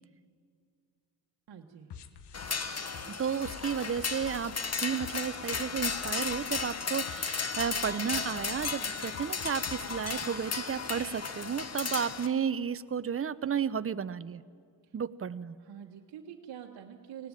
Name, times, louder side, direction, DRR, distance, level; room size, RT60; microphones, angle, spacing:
voice 1, 1.5-1.9 15.6-17.3, right 9 dB, 60° right, 1 dB, 1.5 m, -46 dB
sound 1, 1.9-10.2, left 7 dB, 65° left, 1.3 m, -49 dB
sound 2, 2.3-12.3, left 5 dB, 35° left, 1.4 m, -35 dB
voice 2, 3.1-14.4 14.9-15.6, right 7 dB, 30° right, 16 dB, 0.8 m, -33 dB
18.5 x 17.0 x 9.1 m, 2.3 s
supercardioid pair, 55°, 44 cm